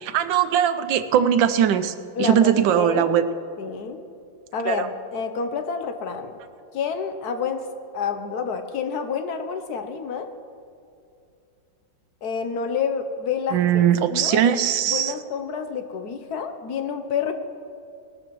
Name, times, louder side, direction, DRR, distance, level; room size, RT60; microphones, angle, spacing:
voice 1, 0.0-3.2 4.7-4.9 13.5-15.1, right 9 dB, 85° right, 10 dB, 1.4 m, -20 dB
voice 2, 2.1-3.1 3.6-4.0 4.5-6.3 6.7-7.7 7.9-10.3 12.2-14.4 14.9-17.3, left 6 dB, 65° left, 7 dB, 1.3 m, -28 dB
20.0 x 13.0 x 3.1 m, 2.5 s
omnidirectional pair, 2.0 m